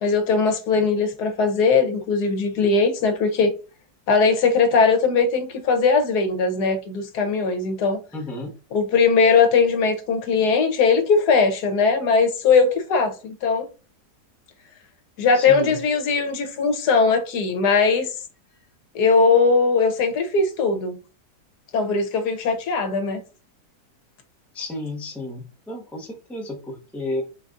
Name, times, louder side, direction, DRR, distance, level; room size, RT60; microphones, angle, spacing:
voice 1, 0.0-3.5 4.1-8.0 8.7-13.7 15.2-18.1 18.9-20.9 21.7-23.2, left 4 dB, 75° left, 1.4 m, -20 dB
voice 2, 8.1-8.5 15.3-15.8 24.5-27.2, left 2 dB, ahead, 0.6 m, -32 dB
4.1 x 3.9 x 2.4 m
omnidirectional pair, 1.7 m